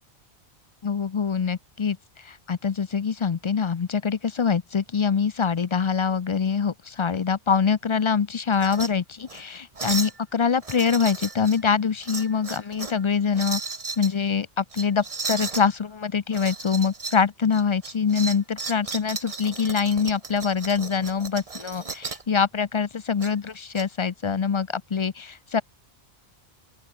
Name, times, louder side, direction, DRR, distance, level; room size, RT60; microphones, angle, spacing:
voice 1, 0.8-2.0 2.2-13.6 14.0-25.6, left 6 dB, 40° left, 0.4 m, -24 dB
sound 1, 8.5-8.9 9.2-9.4 9.8-10.2 10.6-11.6 12.0-13.0 13.3-14.1 14.7-15.7 16.3-17.2 17.5-22.3 23.2-23.8, right 4 dB, 35° right, 1.2 m, -34 dB
open air
omnidirectional pair, 1.1 m